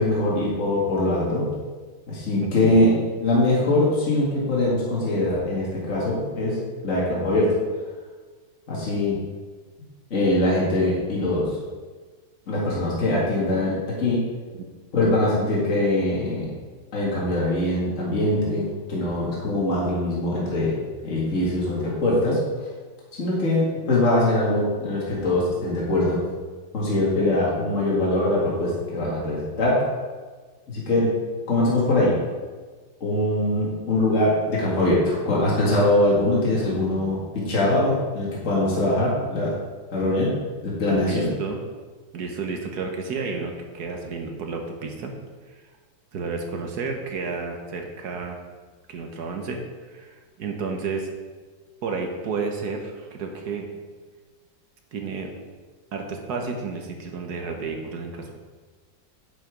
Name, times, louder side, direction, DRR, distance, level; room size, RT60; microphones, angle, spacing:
voice 1, 0.0-1.5 2.1-2.9 3.2-6.6 6.8-7.5 8.7-9.2 10.1-11.5 12.5-14.2 14.9-16.5 16.9-20.7 21.0-22.4 23.2-26.2 26.7-29.8 30.7-31.1 31.5-32.2 33.0-39.5 39.9-40.3 40.6-41.3, left 1 dB, 40° left, -6 dB, 2.3 m, -22 dB
voice 2, 2.4-3.0 40.9-41.6 42.1-45.1 45.5-45.6 46.1-48.4 48.9-49.6 49.9-51.1 51.8-53.7 54.9-55.3 55.9-58.3, right 4 dB, 60° right, 3 dB, 1.4 m, -31 dB
8.4 x 5.7 x 5.1 m, 1.4 s
omnidirectional pair, 2.1 m